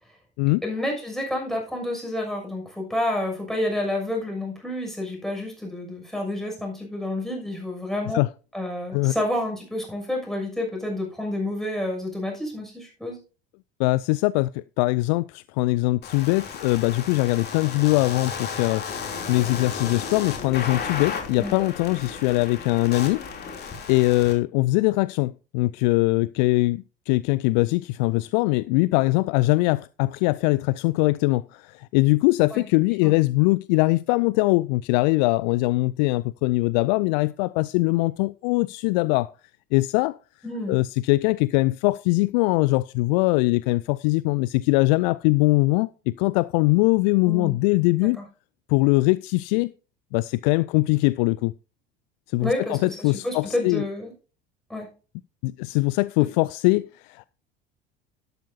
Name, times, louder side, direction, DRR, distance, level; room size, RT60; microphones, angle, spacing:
voice 1, 0.6-8.2 8.5-13.2 21.4-21.7 32.5-32.6 33.0-33.1 40.4-40.8 47.2-47.6 48.0-48.2 52.4-54.1 54.7-54.9, left 1 dB, ahead, 6.5 m, -29 dB
voice 2, 13.8-39.3 39.7-40.2 40.7-48.2 48.7-49.7 50.1-51.5 52.3-53.8 55.4-57.3, left 22 dB, 50° left, 0.4 m, -22 dB
sound 1, 16.0-24.3, left 6 dB, 35° left, 3.1 m, -34 dB
12.0 x 12.0 x 2.8 m
figure-of-eight pair, 65°, 29 cm